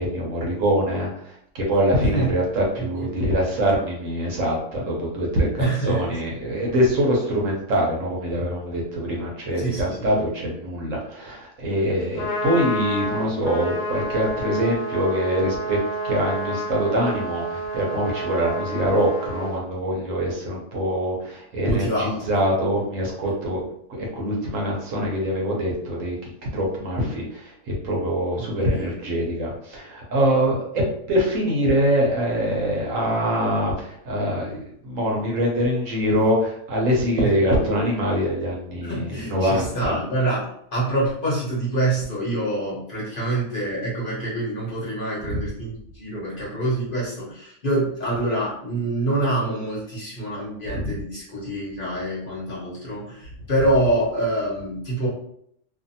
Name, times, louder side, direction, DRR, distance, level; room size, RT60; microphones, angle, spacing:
voice 1, 0.0-15.8 16.0-23.6 23.9-27.5 27.8-30.6 31.1-40.0 45.3-45.4 50.7-50.9, equal, 65° right, -2 dB, 1.0 m, -24 dB
voice 2, 5.6-6.1 9.6-10.0 21.6-22.4 28.4-28.5 28.7-29.0 37.2-37.3 38.8-55.1, right 2 dB, 40° left, -7 dB, 0.9 m, -26 dB
Trumpet, 12.0-19.6, right 1 dB, 75° left, 1.0 m, -29 dB
2.6 x 2.5 x 2.6 m, 0.70 s
omnidirectional pair, 1.5 m